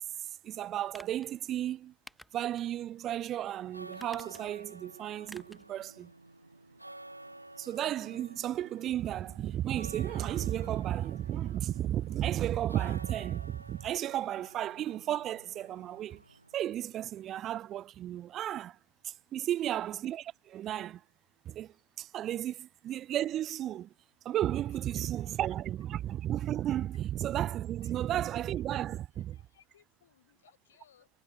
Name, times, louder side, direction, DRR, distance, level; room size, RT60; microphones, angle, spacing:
voice 1, 0.2-1.9 2.3-6.1 7.6-16.2 16.5-18.8 19.0-21.0 21.4-23.9 24.2-29.4, right 12 dB, 30° right, 0.5 m, -34 dB
sound 1, 0.9-1.3 2.1-2.7 3.1-3.2 3.9-4.7 5.3-5.7 6.0-6.1, equal, ahead, 1.2 m, -52 dB
sound 2, 3.5-17.0, right 1 dB, 85° right, 1.0 m, -52 dB
voice 2, 19.3-19.7 22.5-22.6 24.7-25.3 27.8-27.9 28.6-31.1, left 10 dB, 65° left, 5.4 m, -66 dB
figure-of-eight pair, 90°, 0 cm